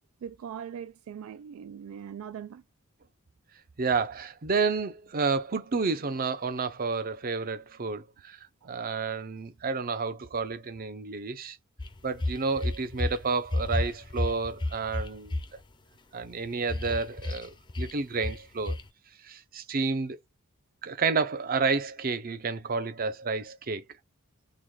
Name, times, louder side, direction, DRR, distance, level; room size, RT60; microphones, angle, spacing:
voice 1, 0.2-2.6, right 8 dB, 75° right, 0.3 m, -40 dB
voice 2, 3.8-8.4 8.6-11.6 12.0-15.4 16.1-18.8 19.2-20.2 20.8-23.8, right 4 dB, 45° right, 0.6 m, -30 dB
sound 1, 11.8-13.2 13.5-15.4 16.7-17.4 17.7-17.9 18.2-18.4 18.7-18.8, left 2 dB, 20° left, 0.5 m, -30 dB
3.9 x 2.2 x 3.1 m
head